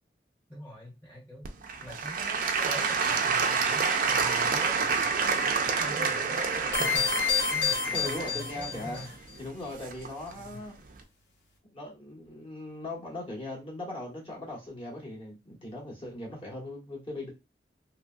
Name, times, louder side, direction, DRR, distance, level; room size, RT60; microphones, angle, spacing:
voice 1, 0.5-1.5 1.8-5.4 5.8-9.2 10.3-10.6, equal, 10° left, 0.9 m, -44 dB
Applause / Crowd, 1.4-10.3 10.9-11.0, right 5 dB, 50° right, 0.4 m, -28 dB
sound 1, 6.7-9.1, left 6 dB, 75° left, 0.9 m, -29 dB
voice 2, 7.9-9.1 9.4-10.8 11.7-17.3, left 1 dB, 30° left, 1.2 m, -39 dB
3.0 x 2.6 x 2.3 m
head